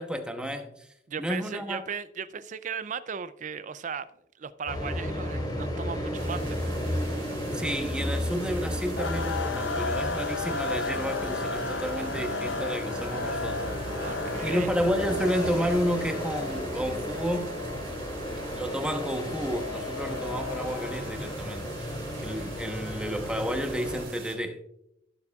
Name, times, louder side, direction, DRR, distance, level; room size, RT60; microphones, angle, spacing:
voice 1, 0.0-0.9 1.2-1.8 7.5-13.8 14.4-17.6 18.5-24.6, equal, 5° right, 0.9 m, -31 dB
voice 2, 1.1-4.1 4.4-6.6 14.0-14.7, right 6 dB, 40° right, 0.4 m, -36 dB
sound 1, 4.7-24.0, equal, 20° left, 2.5 m, -34 dB
sound 2, 6.2-24.4, right 4 dB, 80° right, 2.9 m, -46 dB
sound 3, 9.0-21.3, left 4 dB, 70° left, 0.6 m, -35 dB
16.5 x 7.0 x 2.4 m
head